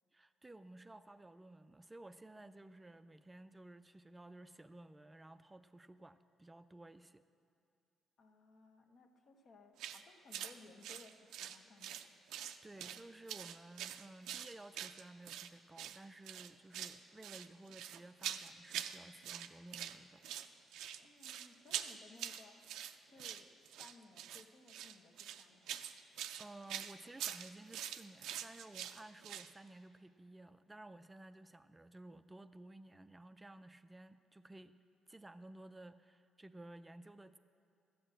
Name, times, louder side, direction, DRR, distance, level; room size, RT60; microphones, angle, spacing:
voice 1, 0.1-7.2 12.6-20.2 26.4-34.8 35.1-37.4, right 2 dB, 15° right, 10 dB, 0.4 m, -55 dB
voice 2, 8.2-12.1 21.0-23.5 23.8-26.0, left 3 dB, 60° left, 4 dB, 1.1 m, -61 dB
sound 1, 9.8-10.0 10.3-10.5 10.8-12.1 12.3-13.0 13.3-15.5 15.8-16.0 16.3-17.0 17.2-19.0 19.2-20.0 20.2-29.5, right 10 dB, 90° right, 0.4 m, -44 dB
13.0 x 8.1 x 7.6 m, 2.5 s
cardioid pair, 90°, 0 cm